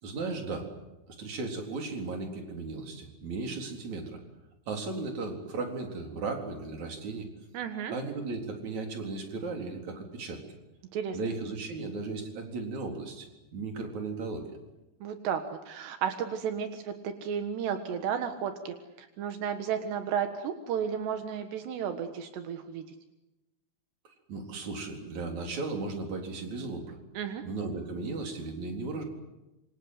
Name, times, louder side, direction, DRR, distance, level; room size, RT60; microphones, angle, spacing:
voice 1, 0.0-0.7 1.1-4.2 4.7-7.3 7.9-10.4 11.1-14.4 24.3-27.0 27.4-29.0, right 3 dB, 45° right, 3 dB, 5.0 m, -36 dB
voice 2, 7.5-7.9 10.9-11.2 15.0-22.8 27.2-27.4, right 8 dB, 80° right, 7 dB, 3.7 m, -33 dB
27.0 x 26.5 x 8.1 m, 1.0 s
omnidirectional pair, 4.8 m